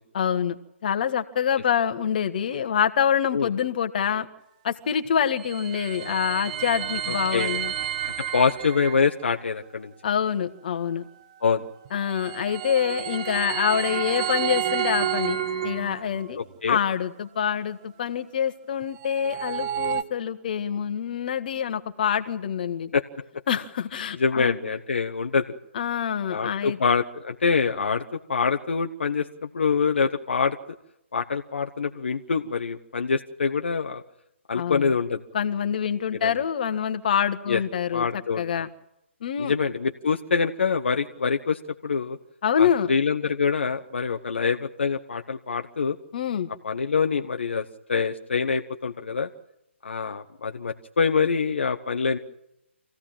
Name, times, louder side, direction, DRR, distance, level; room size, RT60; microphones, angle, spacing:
voice 1, 0.1-4.3 4.6-7.7 10.0-11.1 11.9-15.4 15.6-16.4 16.7-22.9 23.5-24.6 25.7-26.8 34.5-34.9 35.3-38.0 38.4-38.7 39.2-39.5 42.4-42.9 46.1-46.5, left 8 dB, 40° left, 8 dB, 1.6 m, -26 dB
sound 1, 5.1-9.0 11.9-16.3 18.8-20.0, right 10 dB, 30° right, 1.1 m, -30 dB
voice 2, 7.1-7.5 8.3-9.9 11.4-11.7 16.6-16.8 22.9-23.0 24.2-25.4 26.3-28.0 28.3-29.3 29.5-30.6 31.1-34.0 34.5-35.2 36.2-36.3 37.5-37.6 37.9-38.6 39.4-42.2 42.6-46.0 46.6-49.3 49.8-52.2, left 5 dB, 60° left, 4 dB, 1.3 m, -25 dB
26.5 x 16.5 x 8.9 m, 0.87 s
figure-of-eight pair, 135°, 7 cm